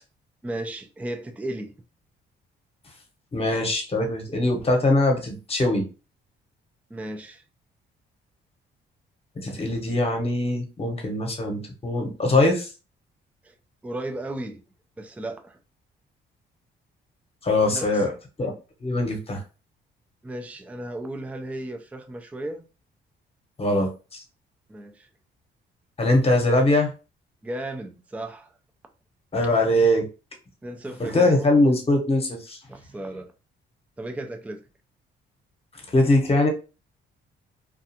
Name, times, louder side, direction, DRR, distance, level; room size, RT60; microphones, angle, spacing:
voice 1, 0.4-1.7 6.9-7.4 13.4-13.5 13.8-14.6 15.0-15.6 17.7-18.0 20.2-22.6 24.7-25.1 27.4-28.5 30.6-31.4 32.7-33.3 34.0-34.6, right 1 dB, 5° right, 0.3 m, -35 dB
voice 2, 3.3-5.9 9.4-12.7 17.4-18.1 18.4-18.5 18.8-19.4 23.6-24.2 26.0-26.9 29.3-30.1 31.0-32.6 35.9-36.5, left 1 dB, 30° left, 0.9 m, -22 dB
2.4 x 2.3 x 2.7 m
cardioid pair, 90°, 20 cm